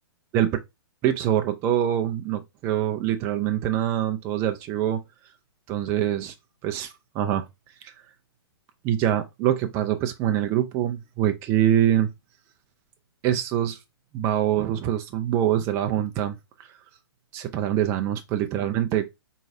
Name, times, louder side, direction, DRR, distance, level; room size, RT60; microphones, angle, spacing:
voice 1, 1.0-5.0 5.7-6.3 6.6-7.4 7.8-7.9 8.8-12.1 13.2-13.8 14.1-16.7 17.3-19.2, right 11 dB, 20° right, 0.4 m, -24 dB
4.6 x 3.1 x 2.6 m
hypercardioid pair, 135°, 14 cm